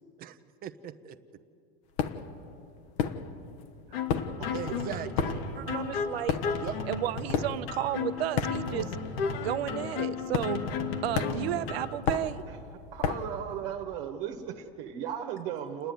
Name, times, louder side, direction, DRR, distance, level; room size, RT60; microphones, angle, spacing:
voice 1, 0.2-1.2 4.5-5.4 6.6-6.8, right 10 dB, 30° right, 9 dB, 0.9 m, -39 dB
sound 1, 2.0-2.4 3.0-3.6 3.9-9.0 9.3-9.6 10.3-10.8 11.1-13.4, left 7 dB, 50° left, 1.3 m, -32 dB
sound 2, 3.9-11.9, left 5 dB, 70° left, 2.3 m, -34 dB
voice 2, 5.6-6.4 6.9-9.0 9.4-10.6 11.0-12.4, right 13 dB, 75° right, 12 dB, 1.0 m, -32 dB
voice 3, 12.9-15.9, right 9 dB, 55° right, 3 dB, 1.6 m, -36 dB
29.5 x 10.0 x 9.5 m, 2.6 s
supercardioid pair, 135°, 31 cm